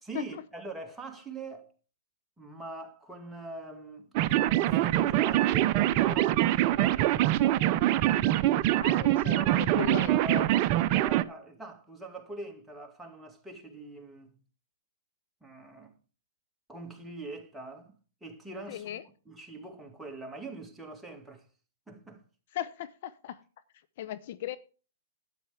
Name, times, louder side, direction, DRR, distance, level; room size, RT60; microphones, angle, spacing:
voice 1, 0.0-1.7 2.4-7.2 9.1-10.5 10.9-14.4 15.4-15.9 16.7-19.0 19.3-21.5 21.9-22.2, right 2 dB, 5° right, 2.0 m, -43 dB
sound 1, 4.2-11.2, right 14 dB, 40° right, 0.6 m, -24 dB
voice 2, 8.8-10.5 18.7-19.0 22.5-23.4 24.0-24.6, left 12 dB, 50° left, 0.7 m, -38 dB
12.5 x 9.2 x 3.4 m
hypercardioid pair, 120°, 0 cm